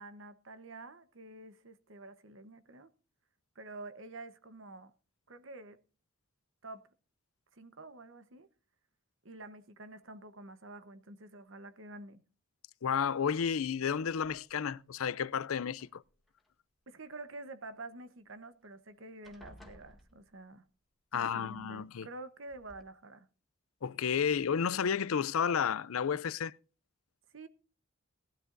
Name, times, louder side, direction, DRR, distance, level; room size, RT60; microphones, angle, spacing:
voice 1, 0.0-2.9 3.5-4.9 5.3-5.8 6.6-6.9 7.5-8.5 9.2-12.2 16.9-20.6 21.1-23.3 27.3-27.5, right 2 dB, 65° right, 1.1 m, -48 dB
voice 2, 12.8-16.0 21.1-22.1 23.8-26.5, left 7 dB, 80° left, 0.5 m, -32 dB
sound 1, 14.5-14.8 15.7-16.5 18.3-18.4 18.7-18.9 19.2-20.7 21.8-21.9 22.5-22.8, equal, ahead, 1.8 m, -58 dB
18.5 x 12.5 x 2.6 m
head